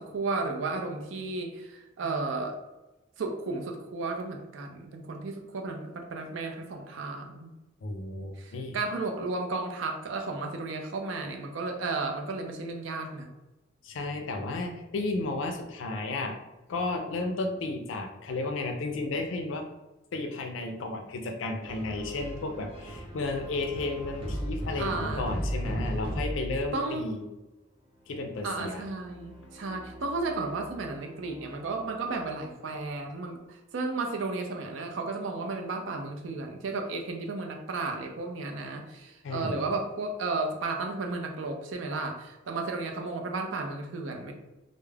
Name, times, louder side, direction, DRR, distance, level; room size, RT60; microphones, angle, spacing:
voice 1, 0.0-2.6 3.2-7.5 8.4-13.3 24.8-25.3 26.7-27.0 28.4-44.3, right 3 dB, 75° right, 3 dB, 0.4 m, -33 dB
voice 2, 7.8-8.8 13.8-16.4 16.7-19.7 20.1-27.3 28.1-28.8 39.2-39.5, left 2 dB, 75° left, 4 dB, 0.4 m, -33 dB
sound 1, 21.6-26.8 28.0-32.9, equal, 30° right, 0.7 m, -38 dB
2.3 x 2.0 x 3.2 m, 1.0 s
head